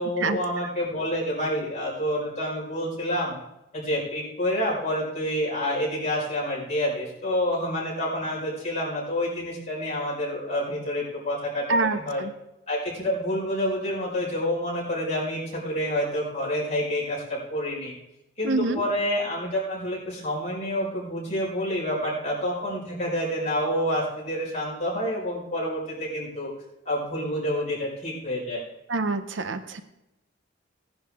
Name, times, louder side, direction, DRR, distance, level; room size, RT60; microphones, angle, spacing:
voice 1, 0.0-3.4 3.7-12.2 12.7-17.9 18.4-26.5 26.9-28.6, equal, 35° left, -5 dB, 5.2 m, -28 dB
voice 2, 11.7-12.3 18.4-18.8 28.9-29.8, right 3 dB, 70° right, 10 dB, 0.8 m, -26 dB
17.0 x 10.5 x 3.6 m, 0.90 s
head